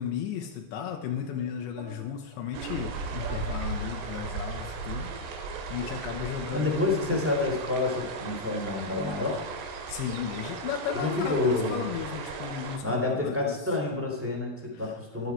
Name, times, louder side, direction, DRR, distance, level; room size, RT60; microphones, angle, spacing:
voice 1, 0.0-7.2 9.9-13.5 14.7-14.9, left 9 dB, 90° left, 3 dB, 3.3 m, -35 dB
sound 1, 0.7-4.2, right 4 dB, 50° right, 4.2 m, -47 dB
sound 2, 2.5-12.8, right 4 dB, 75° right, 3.6 m, -36 dB
voice 2, 6.5-9.4 10.9-11.8 12.8-15.3, left 2 dB, 5° right, 0 dB, 2.3 m, -28 dB
15.0 x 11.5 x 4.7 m, 1.1 s
omnidirectional pair, 5.1 m